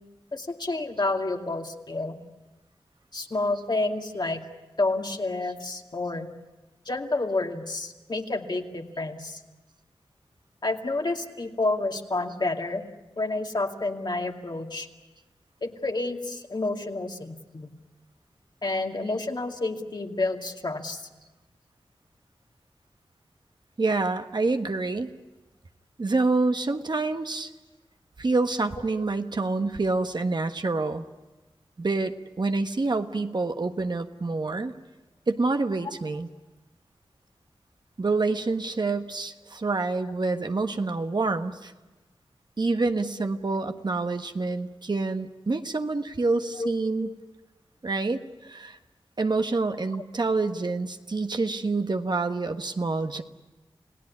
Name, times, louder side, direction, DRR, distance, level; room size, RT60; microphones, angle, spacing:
voice 1, 0.3-2.2 3.1-4.4 4.8-6.3 6.9-9.4 10.6-12.8 13.2-14.9 15.6-17.7 18.6-21.0 46.6-46.7 47.0-47.1, left 2 dB, 50° left, 3 dB, 2.4 m, -29 dB
voice 2, 23.8-25.1 26.0-27.5 28.2-31.0 31.8-34.7 35.3-36.3 38.0-41.7 42.6-47.1 47.8-48.8 49.2-53.2, right 3 dB, 50° right, 7 dB, 1.4 m, -27 dB
29.5 x 17.5 x 9.7 m, 1.1 s
cardioid pair, 45°, 9 cm